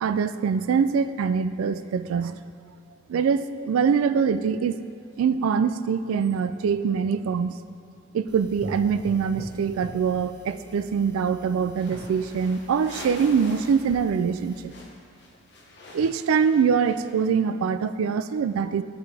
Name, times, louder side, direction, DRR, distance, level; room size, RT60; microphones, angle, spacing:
voice 1, 0.0-2.4 3.1-4.8 5.2-7.6 8.1-14.7 15.9-18.8, right 6 dB, 90° right, 12 dB, 0.3 m, -24 dB
sound 1, 8.3-14.6, equal, 20° right, 0.6 m, -44 dB
sound 2, 11.7-13.9 14.2-17.3, left 2 dB, 55° left, 1.0 m, -45 dB
11.0 x 4.6 x 3.4 m, 2.5 s
head